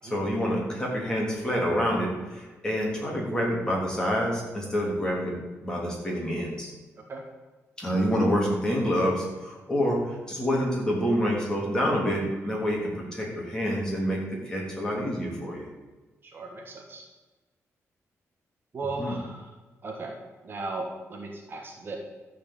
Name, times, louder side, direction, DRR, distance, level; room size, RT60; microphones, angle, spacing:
voice 1, 0.1-5.3 5.6-6.7 7.8-10.0 10.3-15.6 19.0-19.1, equal, 15° left, -3 dB, 3.3 m, -27 dB
voice 2, 16.2-17.1 18.7-19.5 19.8-20.2 20.4-22.0, right 3 dB, 45° right, 1 dB, 1.6 m, -36 dB
13.0 x 5.1 x 8.4 m, 1.2 s
wide cardioid pair, 150°, 5 cm